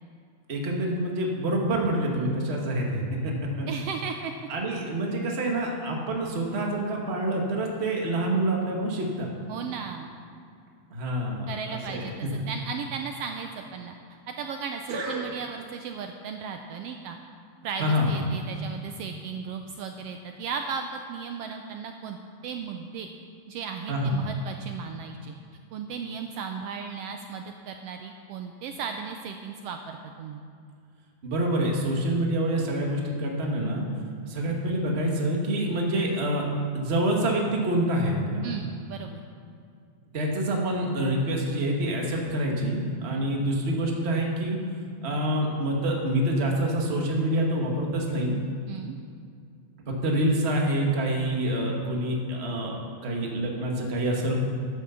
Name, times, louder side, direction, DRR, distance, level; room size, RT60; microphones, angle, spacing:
voice 1, 0.5-3.7 4.5-9.3 10.9-12.3 14.9-15.3 17.8-18.1 23.9-24.2 31.2-33.9 34.3-36.5 36.7-38.4 40.1-44.6 45.0-48.4 49.9-52.8 53.0-54.4, right 1 dB, 35° right, 0 dB, 1.1 m, -27 dB
voice 2, 3.7-4.3 9.5-10.2 11.5-13.9 14.4-17.2 17.6-23.1 23.5-25.3 25.7-30.4 38.4-39.2 48.7-49.0, right 6 dB, 90° right, 5 dB, 1.4 m, -36 dB
11.0 x 8.7 x 7.0 m, 2.3 s
omnidirectional pair, 3.4 m